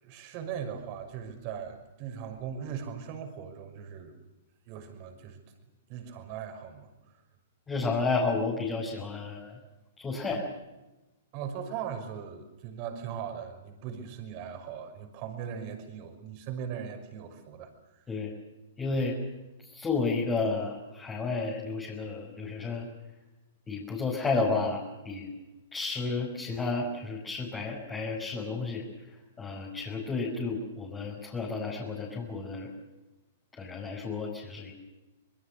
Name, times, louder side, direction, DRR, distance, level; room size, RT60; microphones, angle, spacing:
voice 1, 0.0-4.2 4.7-5.4 5.9-6.9 11.3-18.0, right 8 dB, 45° right, 6 dB, 5.9 m, -39 dB
voice 2, 7.7-9.5 10.0-10.5 18.1-18.3 18.8-19.2 19.7-22.9 23.7-25.3 25.7-28.9 29.4-32.7 33.5-34.7, left 3 dB, 15° left, -3 dB, 5.5 m, -31 dB
26.0 x 21.5 x 6.8 m, 1.0 s
hypercardioid pair, 125°, 0 cm